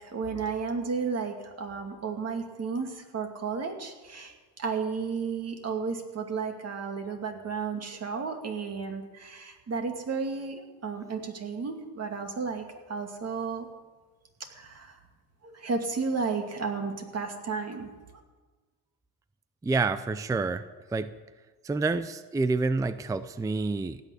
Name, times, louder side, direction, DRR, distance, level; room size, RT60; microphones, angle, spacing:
voice 1, 0.0-13.7 14.5-15.0 15.4-17.9, right 5 dB, 35° right, 4 dB, 2.4 m, -33 dB
voice 2, 19.6-20.6 20.9-21.1 21.6-24.0, right 3 dB, 10° right, 13 dB, 0.5 m, -28 dB
16.5 x 6.7 x 9.7 m, 1.3 s
cardioid pair, 100°, 41 cm